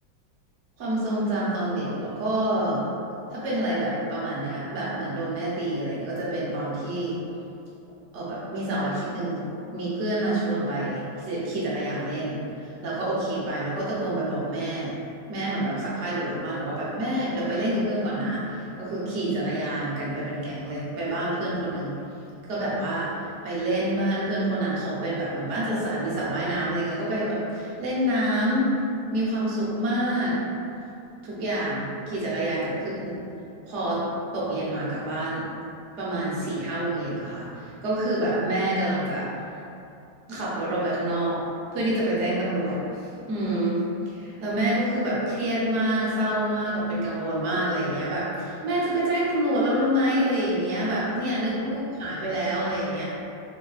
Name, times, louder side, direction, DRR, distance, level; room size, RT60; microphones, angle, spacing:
voice 1, 0.8-2.8 3.3-7.2 8.1-9.4 9.7-14.9 15.3-21.9 22.5-23.1 23.4-28.7 29.1-30.4 31.2-33.1 33.7-34.0 34.3-35.4 36.0-39.3 40.3-41.4 41.7-53.0, right 1 dB, 55° right, -7 dB, 0.9 m, -27 dB
4.8 x 2.2 x 2.3 m, 2.7 s
omnidirectional pair, 2.0 m